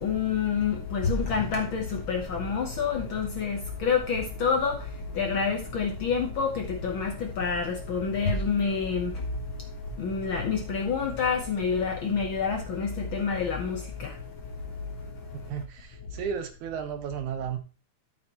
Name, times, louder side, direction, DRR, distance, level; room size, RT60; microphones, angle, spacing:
voice 1, 0.0-4.8 5.1-9.1 10.0-14.1, left 5 dB, 60° left, 1.3 m, -28 dB
voice 2, 15.5-17.6, right 8 dB, 85° right, 2.6 m, -33 dB
12.5 x 6.2 x 3.0 m
omnidirectional pair, 3.4 m